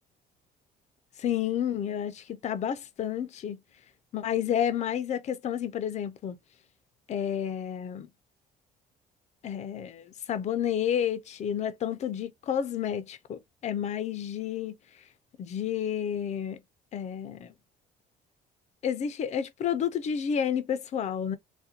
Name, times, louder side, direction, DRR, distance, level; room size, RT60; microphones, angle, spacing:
voice 1, 1.2-3.6 4.1-6.4 7.1-8.1 9.4-14.8 15.4-16.6 16.9-17.5 18.8-21.4, left 9 dB, 45° left, 0.4 m, -30 dB
2.4 x 2.2 x 2.7 m
cardioid pair, 110°, 17 cm